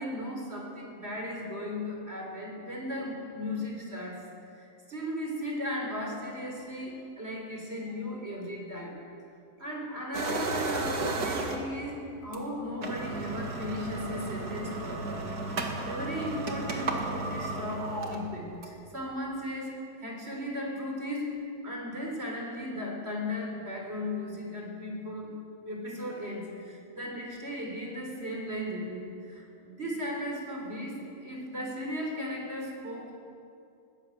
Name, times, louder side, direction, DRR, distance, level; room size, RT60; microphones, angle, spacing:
voice 1, 0.0-9.0 9.6-25.4 25.6-33.1, left 1 dB, 40° right, 0 dB, 4.1 m, -36 dB
sound 1, 10.1-11.8 12.3-12.4 12.7-18.9, right 3 dB, 70° right, 2.5 m, -33 dB
21.0 x 16.5 x 8.0 m, 2.5 s
omnidirectional pair, 1.7 m